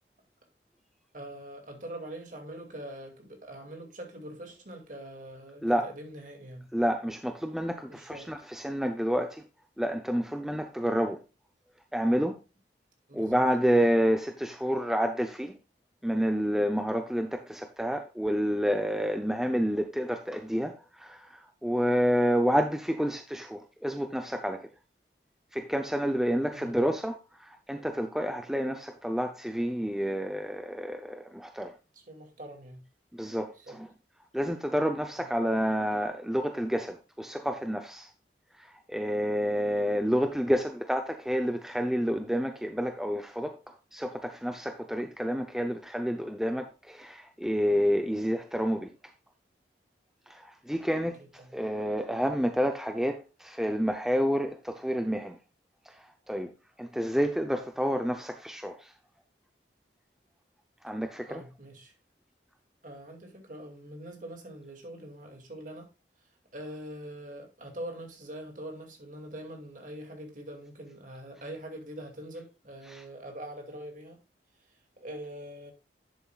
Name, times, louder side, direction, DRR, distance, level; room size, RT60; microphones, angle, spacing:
voice 1, 1.1-6.7 7.9-8.3 13.1-13.4 26.5-26.8 31.9-32.8 33.6-33.8 51.2-51.5 61.3-61.9 62.8-65.9 66.5-74.2 75.0-75.7, right 1 dB, 45° right, 2.3 m, -43 dB
voice 2, 6.7-9.4 9.8-11.2 11.9-12.4 13.1-15.6 16.0-24.7 25.5-31.7 33.1-33.9 34.3-38.1 38.6-48.9 50.3-55.4 55.9-56.5 56.8-58.9 60.8-61.4 72.9-73.0, equal, 5° right, 0.6 m, -29 dB
11.0 x 7.2 x 2.3 m
head